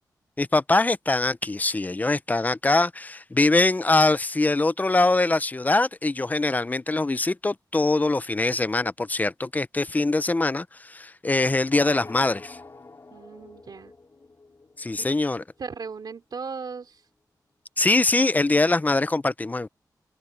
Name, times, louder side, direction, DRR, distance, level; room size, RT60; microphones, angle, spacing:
voice 1, 0.4-12.6 14.8-15.4 17.8-19.7, left 2 dB, 20° left, 0.5 m, -23 dB
sound 1, 11.7-15.7, left 3 dB, 45° left, 2.8 m, -45 dB
voice 2, 13.1-13.9 15.0-15.1 15.6-17.0, right 5 dB, 70° right, 2.9 m, -37 dB
wide cardioid pair, 85°, 7 cm